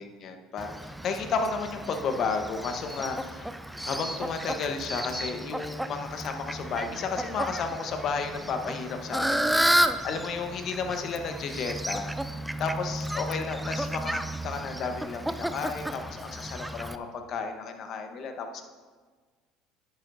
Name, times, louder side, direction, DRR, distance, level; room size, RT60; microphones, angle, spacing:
voice 1, 0.0-3.5 3.8-12.1 12.6-18.7, left 5 dB, 55° left, 6 dB, 1.0 m, -33 dB
Fowl, 0.6-17.0, right 1 dB, 5° right, 0.5 m, -32 dB
10.5 x 10.0 x 2.7 m, 1.5 s
supercardioid pair, 85°, 0 cm